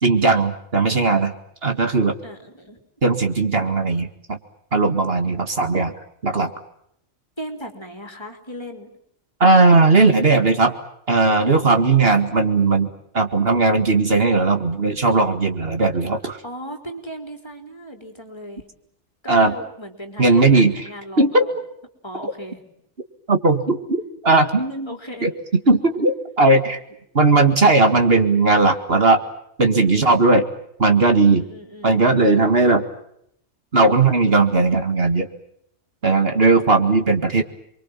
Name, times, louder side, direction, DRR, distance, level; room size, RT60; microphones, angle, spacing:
voice 1, 0.0-1.3 1.6-2.1 3.0-4.4 4.7-5.9 6.2-6.5 9.4-10.7 11.1-12.9 13.1-16.4 19.3-19.5 20.2-20.8 21.2-21.5 23.3-24.9 25.2-25.3 25.7-26.8 27.1-29.2 29.6-30.5 30.8-31.4 31.8-32.8 33.7-35.3 36.0-37.4, right 3 dB, 55° right, 6 dB, 2.2 m, -17 dB
voice 2, 2.2-2.8 7.4-8.9 16.4-18.7 19.2-21.5 22.0-22.6 24.7-25.3 31.2-32.0, equal, 20° left, 5 dB, 4.1 m, -37 dB
29.0 x 23.0 x 7.4 m, 0.73 s
omnidirectional pair, 1.2 m